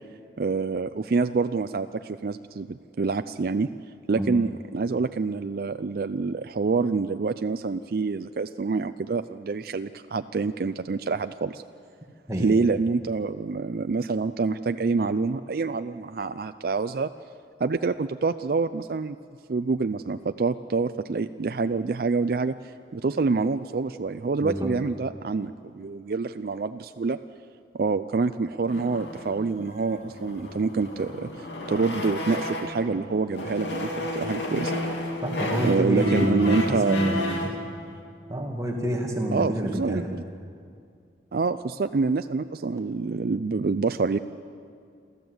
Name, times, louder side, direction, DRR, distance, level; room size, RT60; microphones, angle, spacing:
voice 1, 0.4-3.7 4.1-11.6 12.3-17.1 17.6-19.2 19.5-27.2 27.7-34.8 35.6-37.2 39.3-40.0 41.3-44.2, right 4 dB, 55° right, 9 dB, 0.4 m, -26 dB
sound 1, 28.7-32.9 33.3-37.6, left 1 dB, 80° left, 2.7 m, -32 dB
voice 2, 35.2-37.7 38.3-40.1, right 1 dB, 20° right, 1 dB, 2.1 m, -27 dB
27.5 x 13.5 x 7.9 m, 2.3 s
head